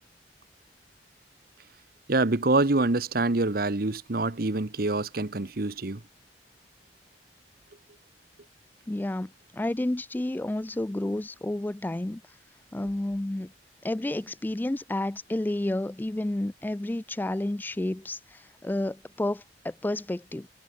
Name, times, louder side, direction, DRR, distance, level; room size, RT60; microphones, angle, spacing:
voice 1, 2.1-6.0, right 2 dB, 55° right, 1.1 m, -25 dB
voice 2, 8.9-12.2 12.7-13.5 13.8-20.5, left 1 dB, 10° left, 0.3 m, -30 dB
head